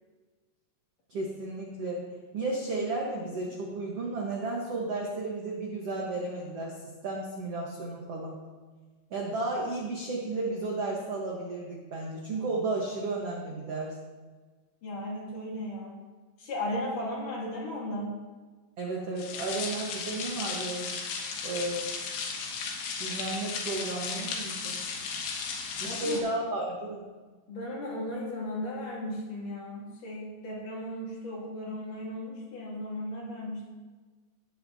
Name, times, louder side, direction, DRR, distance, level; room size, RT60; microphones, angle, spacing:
voice 1, 1.1-2.1 2.3-6.8 7.0-8.4 9.1-13.9 18.8-20.9 21.4-22.0 23.0-24.8 25.8-27.0, right 2 dB, 75° right, -2 dB, 1.4 m, -33 dB
voice 2, 14.8-16.0 16.4-18.2 25.8-26.2 27.5-33.7, left 1 dB, 55° left, -4 dB, 3.7 m, -36 dB
sound 1, 19.2-26.2, left 5 dB, 85° left, 3.5 m, -35 dB
18.5 x 8.3 x 2.8 m, 1.3 s
omnidirectional pair, 4.9 m